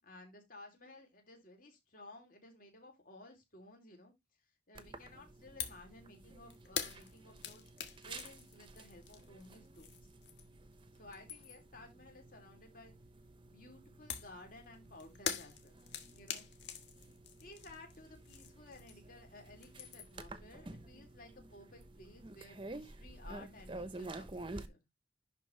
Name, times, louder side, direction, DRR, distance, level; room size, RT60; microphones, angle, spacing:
voice 1, 0.0-4.1 4.7-7.6 8.0-10.1 10.9-12.9 13.5-15.8 16.1-16.4 17.4-24.8, left 2 dB, 50° left, 3.2 m, -56 dB
sound 1, 4.7-24.7, right 2 dB, 30° right, 0.8 m, -51 dB
sound 2, 5.6-5.9 6.2-10.6 11.0-11.7 14.1-19.2 19.5-20.2, left 7 dB, 85° left, 1.5 m, -44 dB
11.0 x 4.3 x 3.3 m
head